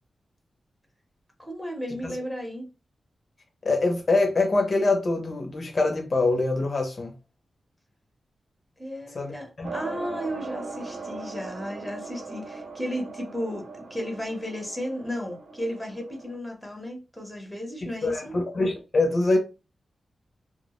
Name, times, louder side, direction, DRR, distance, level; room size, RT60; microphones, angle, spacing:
voice 1, 1.4-2.7 8.8-18.4, equal, ahead, 0.7 m, -34 dB
voice 2, 3.6-7.1 9.1-9.3 9.6-9.7 17.8-19.4, left 2 dB, 45° left, 0.5 m, -24 dB
sound 1, 9.6-16.4, right 3 dB, 60° right, 0.4 m, -39 dB
2.1 x 2.0 x 2.9 m
wide cardioid pair, 115°, 0 cm